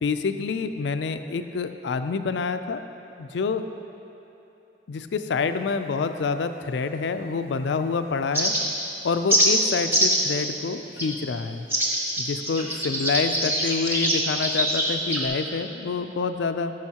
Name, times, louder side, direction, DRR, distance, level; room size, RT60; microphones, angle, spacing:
voice 1, 0.0-2.8 3.2-3.6 4.9-8.5 9.0-11.7 12.2-16.7, left 4 dB, 75° left, 9 dB, 0.4 m, -27 dB
sound 1, 8.3-8.9 9.3-9.5 9.9-10.3 11.0-11.1 11.7-15.3, equal, 15° right, 1.0 m, -23 dB
13.0 x 6.3 x 2.9 m, 3.0 s
head